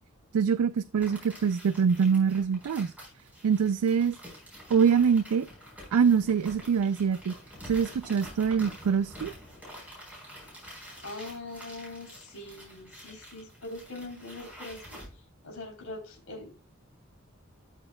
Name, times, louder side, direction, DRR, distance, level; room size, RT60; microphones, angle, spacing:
voice 1, 0.3-2.9 3.4-4.2 4.7-5.5 5.9-7.3 7.6-9.3, right 6 dB, 85° right, 0.4 m, -24 dB
sound 1, 1.0-15.1, equal, 5° right, 4.4 m, -47 dB
voice 2, 11.0-15.0 15.4-16.5, left 2 dB, 80° left, 3.4 m, -42 dB
12.5 x 6.4 x 2.3 m
head